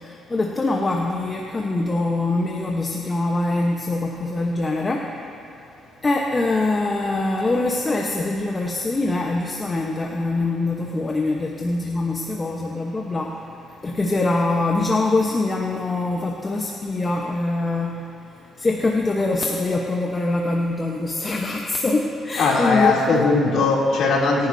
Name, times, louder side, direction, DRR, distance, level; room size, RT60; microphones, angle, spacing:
voice 1, 0.0-5.1 6.0-13.3 13.8-18.1 18.6-23.3, left 2 dB, 30° left, 0 dB, 1.1 m, -23 dB
voice 2, 22.3-24.5, left 3 dB, 75° left, -4 dB, 3.0 m, -19 dB
22.5 x 10.5 x 2.8 m, 2.6 s
cardioid pair, 90°, 0 cm